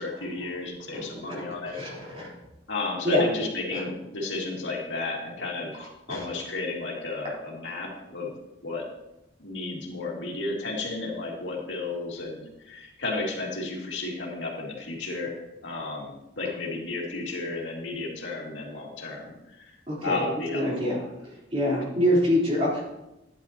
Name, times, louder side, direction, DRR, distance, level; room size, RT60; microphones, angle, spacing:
voice 1, 0.0-1.8 2.7-8.3 8.6-8.8 9.4-15.3 15.6-19.8 20.0-21.0, left 3 dB, 80° left, -2 dB, 2.3 m, -33 dB
voice 2, 0.9-1.5 1.7-2.3 3.0-3.2 3.7-3.8 6.1-6.2 19.9-20.2 20.5-21.0 21.5-22.8, left 1 dB, 30° right, -6 dB, 3.7 m, -25 dB
11.5 x 10.0 x 2.9 m, 0.93 s
head